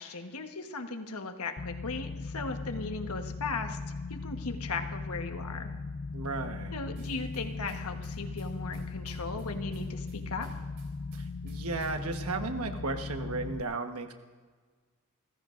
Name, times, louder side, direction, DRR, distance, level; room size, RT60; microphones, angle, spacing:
voice 1, 0.0-3.8 4.1-5.7 6.7-10.5, left 3 dB, 85° left, 5 dB, 1.3 m, -37 dB
sound 1, 1.6-13.6, left 3 dB, 50° left, 0.4 m, -38 dB
voice 2, 6.1-6.8 11.1-14.1, right 3 dB, 80° right, 6 dB, 1.3 m, -35 dB
sound 2, 6.9-12.5, right 1 dB, 50° right, 3.9 m, -53 dB
28.5 x 15.0 x 2.6 m, 1.5 s
head